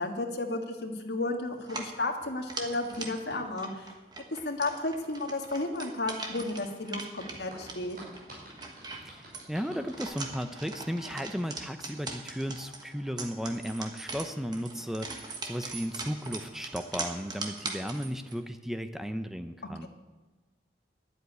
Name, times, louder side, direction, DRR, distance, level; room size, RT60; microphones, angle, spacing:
voice 1, 0.0-3.9 4.4-8.0 19.8-19.9, left 2 dB, 75° left, 3 dB, 1.6 m, -33 dB
sound 1, 1.6-18.4, right 3 dB, 25° right, 1.4 m, -41 dB
sound 2, 2.6-3.4 7.2-10.0, right 1 dB, 50° right, 5.3 m, -49 dB
voice 2, 8.9-19.9, equal, ahead, 8 dB, 0.5 m, -35 dB
11.5 x 8.1 x 9.3 m, 1.2 s
head